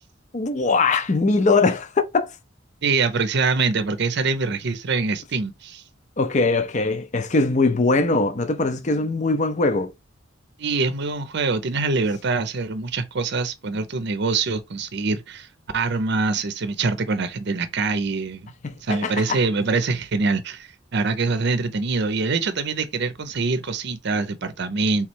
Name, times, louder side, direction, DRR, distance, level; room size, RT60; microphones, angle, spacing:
voice 1, 0.3-2.3 6.2-9.9 18.6-19.4, left 3 dB, 35° left, 0.6 m, -21 dB
voice 2, 2.8-5.8 10.6-15.5 15.7-18.5 18.8-25.1, right 4 dB, 55° right, 0.6 m, -24 dB
3.6 x 3.1 x 4.4 m
head